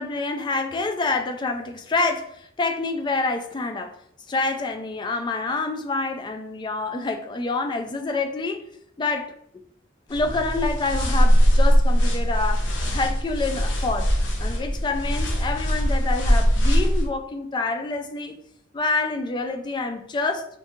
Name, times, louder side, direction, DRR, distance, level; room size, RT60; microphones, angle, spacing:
voice 1, 0.0-3.9 4.3-8.7 9.0-9.3 10.1-12.6 12.9-14.1 14.4-18.4 18.7-20.5, left 3 dB, 25° left, 5 dB, 0.3 m, -27 dB
sound 1, 10.1-17.1, equal, 70° left, 0.7 m, -21 dB
3.7 x 2.4 x 2.7 m, 0.70 s
head